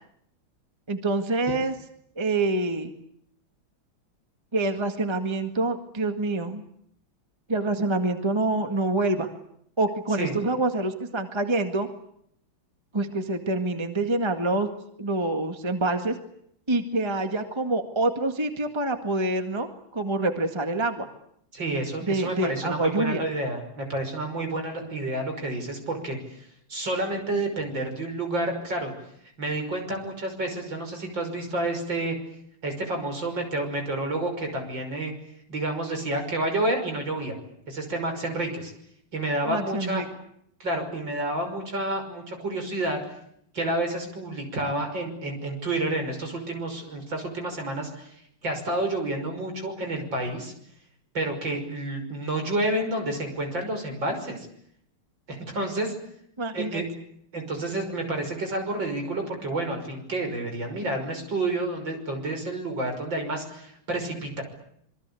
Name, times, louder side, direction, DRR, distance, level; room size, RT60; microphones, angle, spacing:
voice 1, 0.9-1.7 2.1-2.9 4.5-6.6 7.5-9.3 9.8-11.9 12.9-14.7 15.0-16.2 16.7-21.1 22.1-23.3 39.4-40.0 56.4-56.8, right 2 dB, 15° right, 6 dB, 1.8 m, -26 dB
voice 2, 21.5-26.4 26.7-28.9 29.4-32.2 32.6-35.1 35.5-37.3 37.7-38.7 39.1-40.0 40.6-43.0 43.5-48.2 48.4-50.5 51.1-54.5 55.3-55.9 56.5-56.9 57.3-64.4, right 2 dB, 60° right, 5 dB, 6.6 m, -29 dB
27.0 x 23.5 x 8.5 m, 0.71 s
omnidirectional pair, 2.3 m